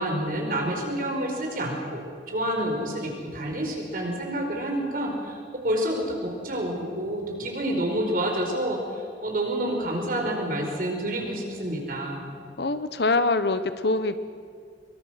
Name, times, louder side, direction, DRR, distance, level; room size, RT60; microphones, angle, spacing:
voice 1, 0.0-12.3, right 1 dB, 50° right, 1 dB, 4.9 m, -28 dB
voice 2, 12.6-14.2, left 3 dB, 65° left, 11 dB, 1.1 m, -24 dB
23.5 x 23.5 x 6.5 m, 2.1 s
head